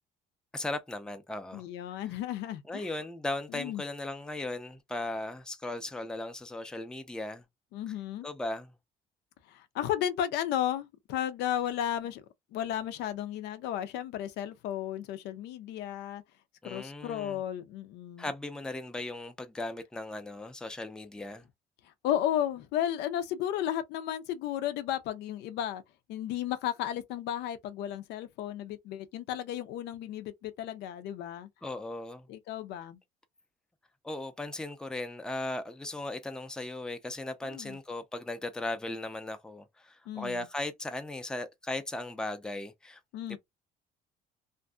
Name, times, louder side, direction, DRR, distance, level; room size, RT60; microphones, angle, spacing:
voice 1, 0.5-1.6 2.7-7.4 8.2-8.7 16.6-17.4 18.2-21.5 31.6-32.3 34.0-43.0 43.3-43.4, left 2 dB, 5° left, 0.4 m, -37 dB
voice 2, 1.5-3.0 3.5-3.8 7.7-8.3 9.5-12.2 12.5-16.2 16.6-18.3 22.0-25.8 26.1-31.5 32.3-33.0 37.4-37.8 40.1-40.5 43.1-43.4, left 11 dB, 85° left, 0.5 m, -34 dB
2.5 x 2.5 x 2.2 m
cardioid pair, 110°, 17 cm